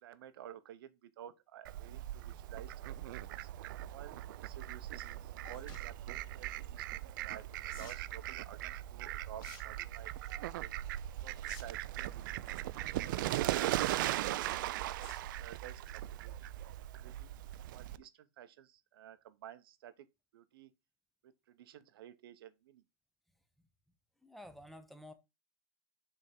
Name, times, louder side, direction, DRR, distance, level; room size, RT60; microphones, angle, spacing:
voice 1, 0.0-2.7 3.0-3.5 3.9-6.0 6.3-10.7 11.2-12.3 12.9-16.5 16.8-17.3 17.7-20.1 20.3-20.7 21.2-22.8, right 11 dB, 75° right, 0.8 m, -53 dB
Fowl, 1.6-18.0, right 14 dB, 55° right, 0.4 m, -39 dB
sound 1, 5.4-5.8 7.7-8.0 9.4-9.6 10.0-10.3 11.4-11.6 11.9-12.0 13.3-13.8 15.0-15.3 15.7-15.9 16.3-16.4 16.6-16.7, left 7 dB, 55° left, 2.4 m, -54 dB
voice 2, 24.2-25.1, left 1 dB, ahead, 0.5 m, -51 dB
6.5 x 3.5 x 4.3 m
supercardioid pair, 170°, 12 cm